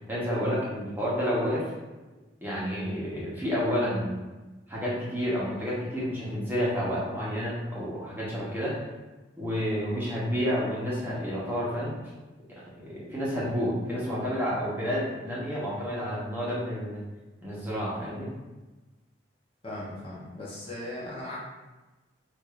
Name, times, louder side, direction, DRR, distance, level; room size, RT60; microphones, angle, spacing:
voice 1, 0.1-1.7 2.4-4.3 4.7-8.7 9.4-12.0 12.8-17.0 17.4-18.3, equal, 10° right, -8 dB, 0.9 m, -30 dB
voice 2, 19.6-21.4, left 1 dB, 30° left, -6 dB, 0.7 m, -38 dB
4.6 x 2.5 x 2.4 m, 1.1 s
head